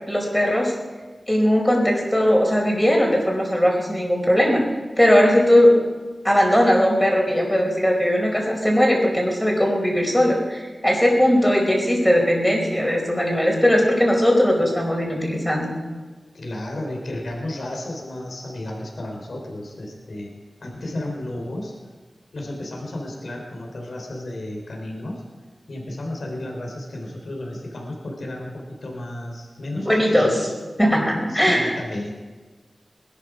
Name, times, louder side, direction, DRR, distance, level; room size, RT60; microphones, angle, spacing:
voice 1, 0.1-0.7 1.3-4.6 5.0-5.8 6.2-15.8 29.7-30.5 30.8-31.8, equal, 5° left, -1 dB, 4.5 m, -19 dB
voice 2, 16.3-20.3 20.6-21.7 22.3-25.2 25.7-30.3 31.3-32.1, left 1 dB, 80° left, 1 dB, 3.8 m, -33 dB
20.5 x 12.0 x 5.0 m, 1.3 s
wide cardioid pair, 80°, 0 cm